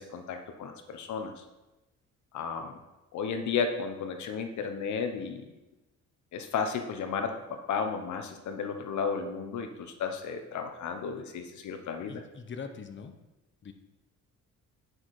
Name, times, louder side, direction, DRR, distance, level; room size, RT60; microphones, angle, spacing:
voice 1, 0.0-1.4 2.3-2.8 3.1-5.4 6.3-12.2, left 5 dB, 70° left, 6 dB, 1.1 m, -33 dB
voice 2, 12.1-13.1 13.6-13.7, left 5 dB, 40° left, 6 dB, 1.1 m, -42 dB
9.7 x 6.3 x 4.9 m, 1.0 s
cardioid pair, 90°, 30 cm